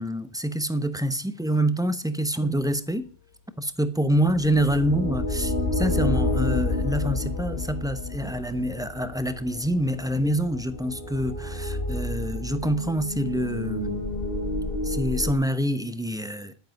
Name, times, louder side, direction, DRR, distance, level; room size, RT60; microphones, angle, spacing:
voice 1, 0.0-3.1 3.6-14.0 14.8-16.5, right 1 dB, 5° right, 0.9 m, -26 dB
sound 1, 4.3-15.3, left 2 dB, 70° left, 1.8 m, -29 dB
10.5 x 9.5 x 5.3 m
omnidirectional pair, 1.1 m